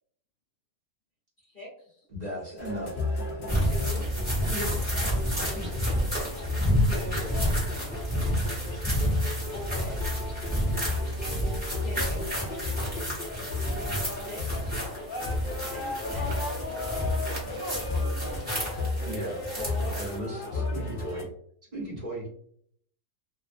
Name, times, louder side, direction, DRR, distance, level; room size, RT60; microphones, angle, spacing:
voice 1, 1.4-2.0 3.6-4.1 6.8-7.4 9.5-10.0 11.8-12.3 14.3-14.7 15.7-16.6 19.6-20.0, left 1 dB, 40° left, -6 dB, 0.9 m, -41 dB
voice 2, 2.1-3.0 4.4-4.8 5.3-5.7 19.0-19.4 19.8-21.3 21.7-22.2, equal, 35° right, -8 dB, 0.8 m, -36 dB
sound 1, 2.6-21.2, left 2 dB, 75° left, 0.4 m, -34 dB
sound 2, 3.5-20.2, equal, 5° right, 0.9 m, -30 dB
voice 3, 17.4-18.7 19.5-19.6, left 1 dB, 65° right, 0 dB, 1.1 m, -44 dB
2.7 x 2.1 x 2.5 m, 0.64 s
omnidirectional pair, 1.6 m